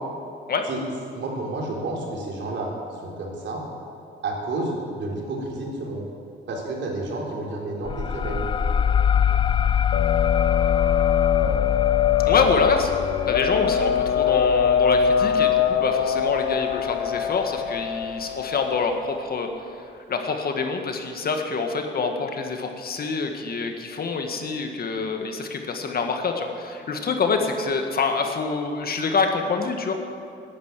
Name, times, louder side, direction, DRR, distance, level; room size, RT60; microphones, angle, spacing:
voice 1, 1.1-2.7 3.0-3.6 4.2-6.1 6.5-8.4, right 2 dB, 65° right, -1 dB, 3.8 m, -30 dB
sound 1, 7.9-17.1, left 8 dB, 25° left, 0.4 m, -25 dB
sound 2, 9.9-19.2, left 8 dB, 90° left, 0.7 m, -23 dB
voice 2, 12.2-12.9 13.3-19.5 20.1-29.9, left 4 dB, 50° left, 4 dB, 1.9 m, -26 dB
11.5 x 11.0 x 9.1 m, 2.6 s
cardioid pair, 90°, 20 cm